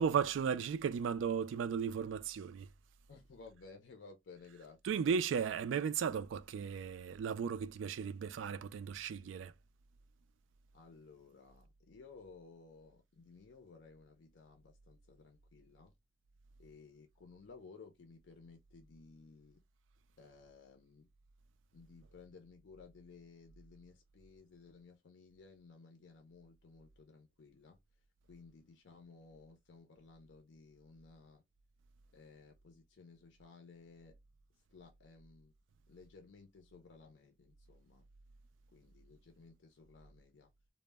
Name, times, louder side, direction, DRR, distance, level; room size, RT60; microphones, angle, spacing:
voice 1, 0.0-2.7 4.8-9.5, right 7 dB, 80° right, 0.3 m, -35 dB
voice 2, 3.1-5.1 10.7-15.9 16.6-19.6 20.2-21.1 21.7-27.8 28.3-31.4 32.1-34.2 34.7-35.5 35.9-38.1 38.7-40.5, left 4 dB, 70° left, 0.5 m, -57 dB
2.1 x 2.0 x 3.2 m
head